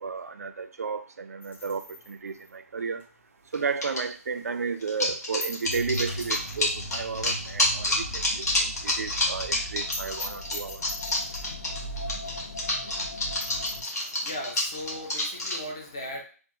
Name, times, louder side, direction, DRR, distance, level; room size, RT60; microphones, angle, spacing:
voice 1, 0.0-3.0 3.5-10.8, right 5 dB, 70° right, 10 dB, 0.4 m, -33 dB
sound 1, 1.4-4.0 4.4-4.5 4.8-4.9 5.4-6.8 7.1-7.2 7.5-7.6 8.0-8.1 8.3-8.4 8.7-8.8 9.1-9.2 9.5-9.6 9.9-11.6 12.2-12.3 12.7-12.8 13.1-13.2 13.4-14.4, left 2 dB, 45° left, 1.3 m, -41 dB
sound 2, 3.5-4.0 4.8-15.6, left 1 dB, 85° left, 1.5 m, -28 dB
sound 3, 5.6-13.8, equal, 60° left, 0.7 m, -39 dB
voice 2, 13.8-16.2, left 1 dB, 15° left, 0 dB, 0.3 m, -38 dB
3.4 x 2.0 x 2.9 m, 0.38 s
hypercardioid pair, 180°, 9 cm